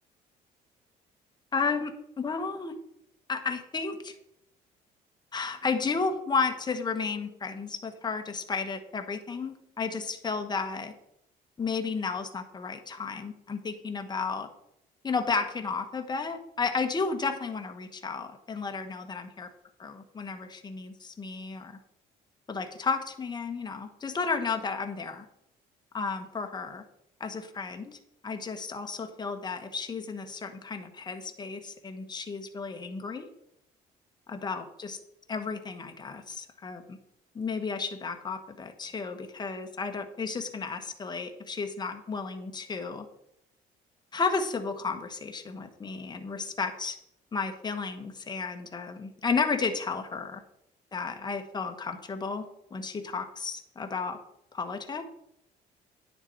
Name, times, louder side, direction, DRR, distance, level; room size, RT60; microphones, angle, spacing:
voice 1, 1.5-2.7 3.3-4.1 5.3-10.9 11.6-14.5 15.0-19.5 19.8-21.8 22.5-25.3 25.9-26.8 27.2-28.0 28.2-33.3 34.3-35.0 35.3-37.0 37.3-43.1 44.1-47.0 47.3-50.4 50.9-54.2 54.5-55.0, left 4 dB, 25° left, 5 dB, 1.3 m, -33 dB
10.0 x 6.8 x 4.6 m, 0.77 s
cardioid pair, 110°, 17 cm